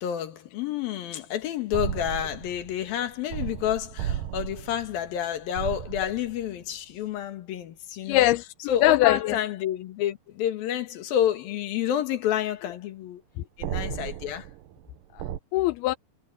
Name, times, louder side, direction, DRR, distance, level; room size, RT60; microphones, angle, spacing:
voice 1, 0.0-8.3 8.7-13.2 13.6-14.5, left 10 dB, 70° left, 3.4 m, -29 dB
sound 1, 1.7-6.7 13.6-15.4, right 11 dB, 70° right, 2.3 m, -35 dB
voice 2, 8.0-9.4 15.1-16.0, left 16 dB, 85° left, 2.6 m, -22 dB
omnidirectional pair, 4.6 m